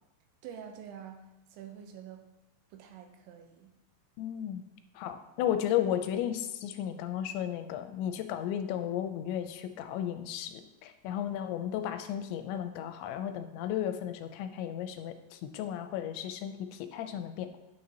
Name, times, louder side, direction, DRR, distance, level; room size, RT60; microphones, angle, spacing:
voice 1, 0.4-2.3 2.7-3.7, right 8 dB, 85° right, 5 dB, 3.2 m, -47 dB
voice 2, 4.2-4.6 5.0-17.6, left 10 dB, 90° left, 8 dB, 2.9 m, -34 dB
9.4 x 9.0 x 2.9 m, 0.90 s
omnidirectional pair, 5.2 m